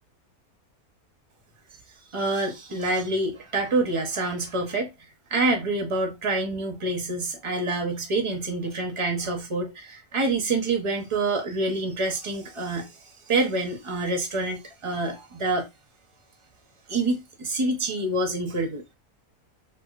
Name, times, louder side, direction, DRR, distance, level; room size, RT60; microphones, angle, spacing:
voice 1, 2.1-4.9 5.3-15.7 16.9-18.9, right 2 dB, 30° right, 0.6 m, -27 dB
3.0 x 3.0 x 2.4 m
omnidirectional pair, 1.5 m